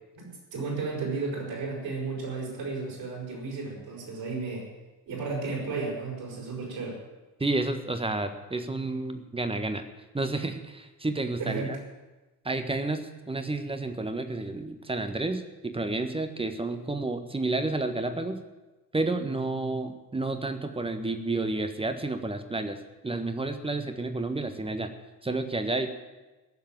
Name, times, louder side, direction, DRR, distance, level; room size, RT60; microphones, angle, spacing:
voice 1, 0.2-4.7 5.1-7.0 11.4-11.8, right 4 dB, 50° right, -2 dB, 6.3 m, -33 dB
voice 2, 7.4-9.8 10.1-11.8 12.4-18.4 18.9-22.8 23.0-24.9 25.2-25.9, right 2 dB, 10° right, 8 dB, 1.4 m, -30 dB
15.5 x 7.4 x 9.3 m, 1.1 s
figure-of-eight pair, 50°, 46 cm